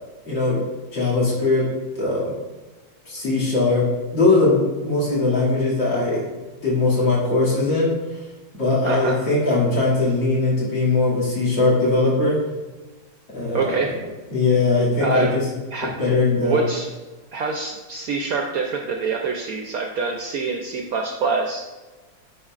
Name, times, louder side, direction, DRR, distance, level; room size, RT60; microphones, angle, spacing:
voice 1, 0.3-0.6 0.9-1.6 2.0-2.3 3.1-3.8 4.1-6.2 6.6-7.9 8.6-12.4 13.3-13.7 14.3-15.4 16.0-16.6, left 3 dB, 75° left, -8 dB, 3.1 m, -20 dB
voice 2, 8.8-9.2 13.5-13.9 15.0-15.3 15.7-15.9 16.4-16.9 17.3-21.6, right 4 dB, 70° right, 2 dB, 0.8 m, -25 dB
10.0 x 4.6 x 2.4 m, 1.3 s
omnidirectional pair, 2.0 m